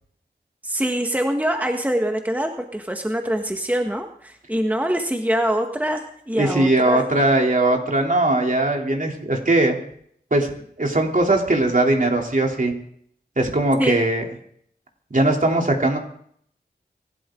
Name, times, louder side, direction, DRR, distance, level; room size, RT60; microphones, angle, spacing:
voice 1, 0.6-7.0 13.8-14.0, right 1 dB, 10° right, 4 dB, 1.5 m, -24 dB
voice 2, 6.4-9.8 10.3-10.5 10.8-12.7 13.4-14.2 15.1-16.0, right 2 dB, 50° right, 1 dB, 3.3 m, -19 dB
25.5 x 12.0 x 3.8 m, 0.65 s
wide cardioid pair, 55°, 17 cm